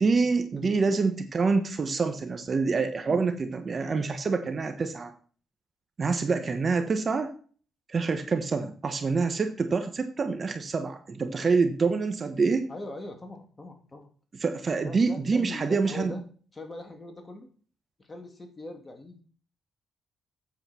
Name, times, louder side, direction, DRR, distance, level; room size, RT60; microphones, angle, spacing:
voice 1, 0.0-5.1 6.0-7.3 7.9-12.6 14.4-16.1, right 4 dB, 40° right, 8 dB, 1.2 m, -26 dB
voice 2, 0.9-1.2 12.7-14.1 14.8-16.2 16.5-17.5 18.0-19.2, left 2 dB, 25° left, 4 dB, 2.6 m, -41 dB
8.6 x 7.6 x 4.5 m, 0.41 s
cardioid pair, 90°, 0 cm